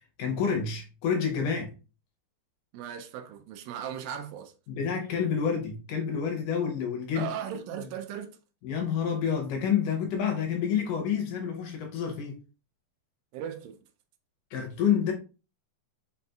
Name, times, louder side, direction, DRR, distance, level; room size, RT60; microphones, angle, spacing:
voice 1, 0.2-1.7 4.7-7.3 7.8-7.9 8.6-12.4 14.5-15.1, left 7 dB, 70° left, 2.2 m, -28 dB
voice 2, 2.7-4.6 7.2-8.4 13.3-13.8, right 9 dB, 80° right, 2.2 m, -37 dB
5.5 x 4.0 x 2.3 m
omnidirectional pair, 4.2 m